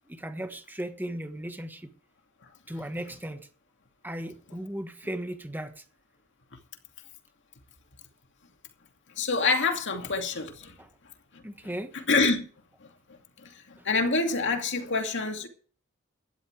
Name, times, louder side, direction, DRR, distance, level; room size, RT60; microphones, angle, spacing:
voice 1, 0.1-1.9 2.7-3.4 4.0-5.8 10.8-10.9 11.4-11.9, right 1 dB, 10° right, 1.4 m, -36 dB
voice 2, 9.2-10.7 12.1-12.4 13.8-15.5, left 3 dB, 60° left, 2.4 m, -26 dB
16.5 x 12.5 x 3.4 m
head